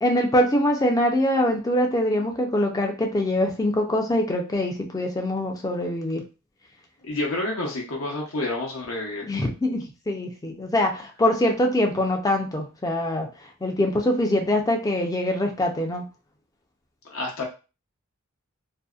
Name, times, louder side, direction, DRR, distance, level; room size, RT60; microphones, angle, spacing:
voice 1, 0.0-6.2 9.3-13.3 13.6-16.0, left 1 dB, 15° left, 3 dB, 0.4 m, -23 dB
voice 2, 7.0-9.3 17.0-17.4, left 2 dB, 65° left, -1 dB, 0.6 m, -29 dB
2.6 x 2.1 x 2.3 m, 0.32 s
head